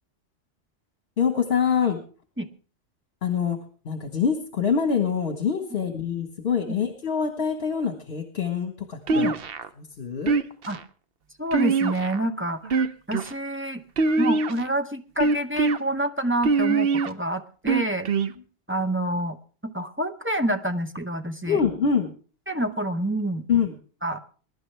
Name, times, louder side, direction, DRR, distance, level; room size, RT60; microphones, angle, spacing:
voice 1, 1.2-2.0 3.2-3.6 3.8-9.3 10.0-10.4 21.5-22.1 23.5-23.7, left 7 dB, 60° left, 5 dB, 1.6 m, -25 dB
sound 1, 9.1-9.7 10.3-10.8 11.5-12.2 12.6-13.3 14.0-14.7 15.2-15.8 16.4-17.1 17.7-18.3, right 4 dB, 55° right, 0.9 m, -23 dB
voice 2, 11.4-12.8 13.1-13.8 14.2-18.1 18.7-19.4 19.6-21.6 22.5-23.4 24.0-24.2, right 1 dB, 15° right, 6 dB, 0.7 m, -27 dB
22.0 x 11.0 x 3.4 m, 0.39 s
omnidirectional pair, 1.2 m